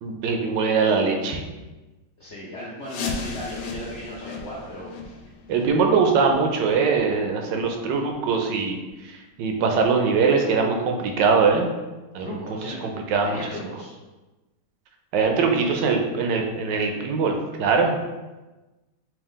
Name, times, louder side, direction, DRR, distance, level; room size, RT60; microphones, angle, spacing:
voice 1, 0.0-1.4 5.5-8.8 9.4-11.7 12.1-12.4 12.6-13.4 15.1-17.3 17.6-17.9, right 5 dB, 80° right, 3 dB, 1.2 m, -22 dB
voice 2, 2.2-5.2 12.2-13.0 13.2-13.9, left 1 dB, 65° left, -6 dB, 0.7 m, -36 dB
sound 1, 2.8-8.4 8.8-8.9 9.4-9.5 10.1-10.2 10.8-10.9, left 4 dB, 85° left, 1.3 m, -37 dB
3.5 x 2.8 x 3.5 m, 1.1 s
omnidirectional pair, 2.0 m